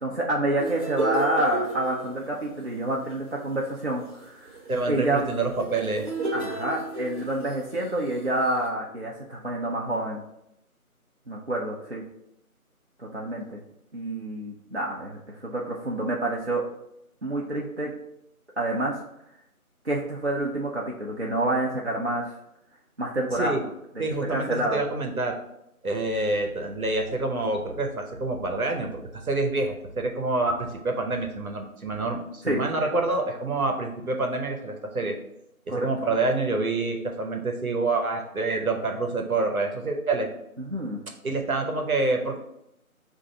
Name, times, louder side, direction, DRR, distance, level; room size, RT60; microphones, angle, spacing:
voice 1, 0.0-4.5 4.9-5.2 6.3-10.2 11.3-12.0 13.0-13.6 13.9-16.6 17.2-17.9 18.6-18.9 19.8-22.3 23.0-23.5 24.3-24.8 32.5-32.6 35.7-35.9 40.6-41.0, right 1 dB, 50° right, -4 dB, 0.5 m, -28 dB
sound 1, 0.6-7.8 8.5-8.7, right 3 dB, 35° right, 1.1 m, -33 dB
voice 2, 4.7-6.1 23.4-23.6 24.0-25.4 25.8-29.0 29.2-35.2 35.7-40.3 41.2-42.4, right 3 dB, 70° right, 3 dB, 0.9 m, -27 dB
4.5 x 2.6 x 3.8 m, 0.81 s
figure-of-eight pair, 170°, 44 cm